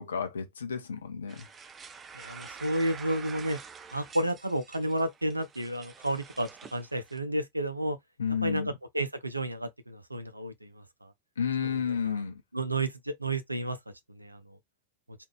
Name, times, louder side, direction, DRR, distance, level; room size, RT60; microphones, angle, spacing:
voice 1, 0.0-1.5 8.2-8.7 11.4-12.4, left 7 dB, 70° left, 0.7 m, -31 dB
sound 1, 1.3-7.2, right 6 dB, 20° right, 0.4 m, -47 dB
voice 2, 2.1-3.6 3.9-8.0 8.4-11.1 11.6-11.7 12.0-12.2 12.5-13.8 14.2-14.4, right 1 dB, 85° right, 0.5 m, -31 dB
3.4 x 2.4 x 3.1 m
figure-of-eight pair, 90°, 0 cm